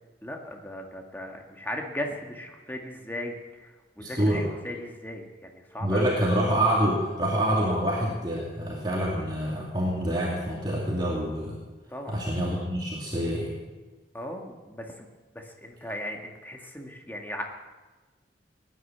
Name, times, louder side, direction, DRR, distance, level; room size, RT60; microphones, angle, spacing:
voice 1, 0.2-6.1 11.9-12.1 14.1-15.1 15.4-17.4, left 1 dB, 10° left, 2 dB, 1.8 m, -37 dB
voice 2, 4.0-4.5 5.8-11.6 12.1-13.5, right 1 dB, 25° right, -4 dB, 2.6 m, -26 dB
18.5 x 10.0 x 7.5 m, 1.3 s
head